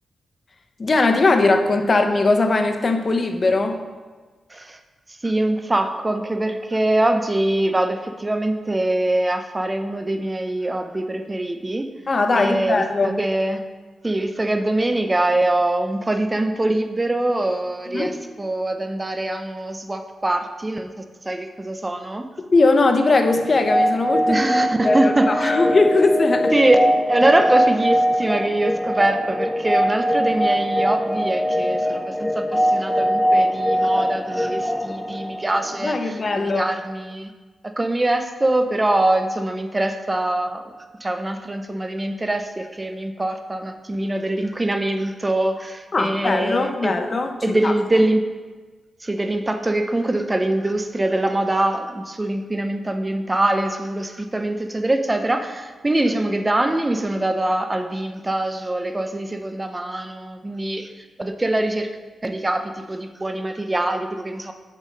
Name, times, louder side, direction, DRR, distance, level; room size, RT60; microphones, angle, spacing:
voice 1, 0.8-3.8 12.1-13.2 17.9-18.1 22.4-24.4 24.8-26.5 35.8-36.7 45.9-48.1, left 3 dB, 40° left, 6 dB, 0.8 m, -20 dB
voice 2, 5.2-11.9 12.3-13.6 14.0-22.2 24.3-25.6 26.5-36.2 36.5-37.3 37.6-40.7 41.0-46.9 47.4-48.2 49.0-60.9 61.2-61.9 62.2-64.5, right 1 dB, 20° right, 6 dB, 0.7 m, -23 dB
sound 1, 23.3-36.0, equal, 10° left, 0.3 m, -22 dB
7.0 x 6.4 x 5.3 m, 1.3 s
cardioid pair, 105°, 0 cm